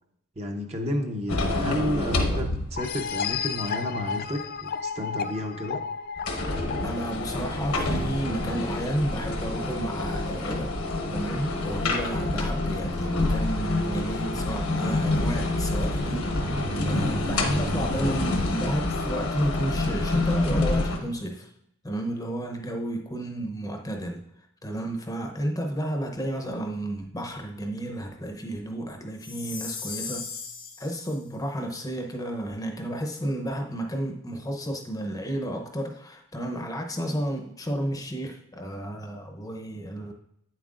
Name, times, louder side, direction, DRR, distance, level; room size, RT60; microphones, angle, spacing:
voice 1, 0.4-5.8 22.6-22.7, equal, 30° right, 3 dB, 0.7 m, -31 dB
sound 1, 1.3-3.1 3.5-3.6 6.2-21.0, left 2 dB, 70° left, 1.2 m, -27 dB
sound 2, 2.8-8.2, left 6 dB, 45° left, 0.4 m, -33 dB
voice 2, 6.8-10.8 11.1-21.5 21.8-24.2 24.6-30.4 30.8-40.1, right 1 dB, 15° left, 2 dB, 0.7 m, -32 dB
Chime, 29.2-31.2, left 5 dB, 90° left, 2.6 m, -37 dB
9.0 x 7.4 x 2.5 m, 0.74 s
head